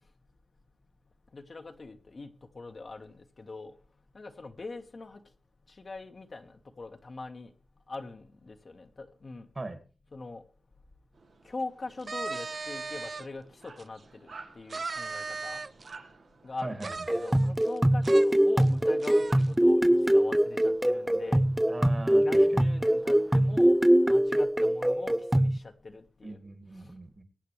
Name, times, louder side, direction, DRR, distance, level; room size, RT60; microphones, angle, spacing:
voice 1, 1.3-2.3 2.5-3.7 4.1-5.2 5.8-7.5 7.9-9.4 10.1-10.4 11.4-15.6 16.4-21.4 22.1-23.8 24.1-26.4, left 3 dB, 55° left, 1.7 m, -42 dB
sound 1, 11.1-24.3, right 4 dB, 90° right, 3.6 m, -55 dB
sound 2, 12.0-13.3 13.8-13.9 14.7-15.9 16.8-17.8 18.0-18.3 18.6-18.7 19.0-19.5, right 4 dB, 55° right, 0.6 m, -37 dB
sound 3, 17.1-25.6, right 1 dB, 10° right, 0.7 m, -23 dB
voice 2, 21.7-22.7 26.2-27.2, right 2 dB, 40° right, 2.3 m, -40 dB
22.5 x 8.6 x 3.4 m
cardioid pair, 60°, 0 cm